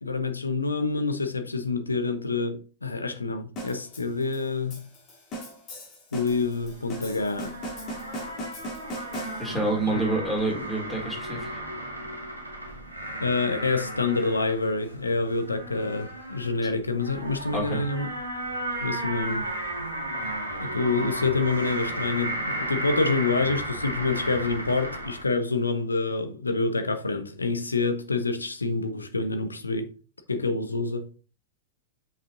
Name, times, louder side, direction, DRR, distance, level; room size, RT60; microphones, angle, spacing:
voice 1, 0.0-4.9 6.1-7.6 13.2-18.1 18.8-19.5 20.6-29.9 30.3-31.1, left 3 dB, 80° left, 0.8 m, -27 dB
sound 1, 3.6-9.8, equal, 40° left, 2.9 m, -39 dB
sound 2, 6.3-25.2, right 1 dB, 85° right, 1.5 m, -34 dB
voice 2, 9.4-11.6 17.5-17.8, right 2 dB, 5° left, 2.7 m, -28 dB
7.0 x 5.5 x 2.6 m
figure-of-eight pair, 90°, 0 cm